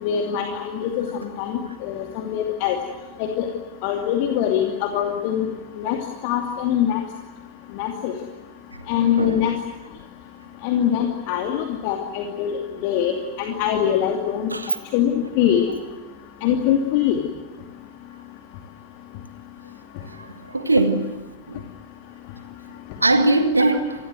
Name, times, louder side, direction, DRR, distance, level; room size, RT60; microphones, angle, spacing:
voice 1, 0.0-2.8 3.2-3.5 3.8-5.5 5.8-6.0 6.2-7.0 7.8-8.1 8.9-9.5 10.6-14.5 14.9-15.7 16.4-17.2 23.6-23.7, left 9 dB, 45° left, 2.6 m, -23 dB
voice 2, 20.1-21.0 21.5-21.6 23.0-23.9, right 2 dB, 80° right, 2.0 m, -20 dB
27.5 x 20.5 x 7.9 m
figure-of-eight pair, 90°, 0 cm